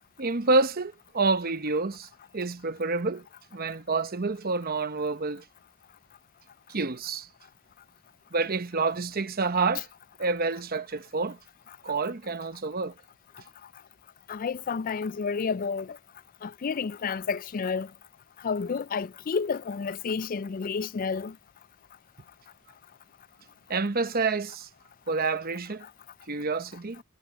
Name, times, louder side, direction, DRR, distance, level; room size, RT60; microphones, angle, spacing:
voice 1, 0.2-2.1 2.3-3.3 3.5-5.4 6.7-7.3 8.3-9.9 10.2-11.4 11.8-12.9 23.7-24.7 25.1-25.8 26.3-27.0, right 3 dB, 45° right, 0.9 m, -28 dB
voice 2, 14.3-16.0 16.4-17.9 18.4-21.3, left 5 dB, 40° left, 0.4 m, -30 dB
head